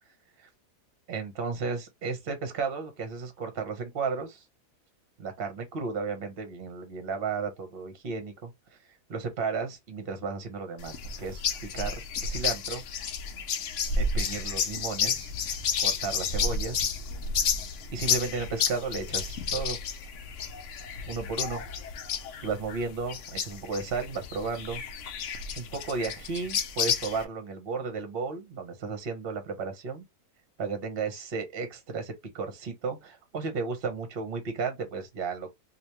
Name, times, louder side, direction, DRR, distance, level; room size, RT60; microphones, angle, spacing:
voice 1, 1.1-4.4 5.2-8.8 9.1-12.8 13.9-17.0 17.9-19.8 21.1-21.6 22.4-24.8 25.6-30.1 30.6-35.5, right 4 dB, 40° right, 1.1 m, -34 dB
sound 1, 10.8-27.3, left 5 dB, 60° left, 0.9 m, -31 dB
3.3 x 2.8 x 3.0 m
omnidirectional pair, 1.7 m